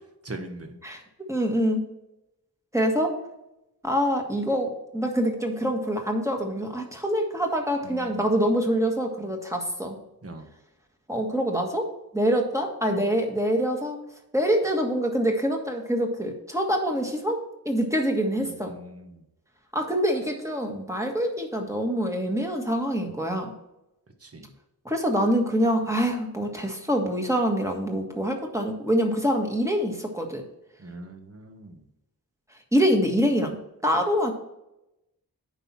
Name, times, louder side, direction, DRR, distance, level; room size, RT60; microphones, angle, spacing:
voice 1, 0.2-0.8 7.8-8.3 10.2-10.5 18.4-19.2 24.2-24.5 30.8-31.9, right 1 dB, 40° right, 5 dB, 1.4 m, -41 dB
voice 2, 1.3-1.8 2.7-3.2 3.8-10.0 11.1-14.0 14.3-18.8 19.7-23.5 24.8-30.4 32.7-34.3, equal, 10° right, 2 dB, 1.6 m, -25 dB
9.2 x 5.6 x 4.3 m, 0.91 s
wide cardioid pair, 95°, 38 cm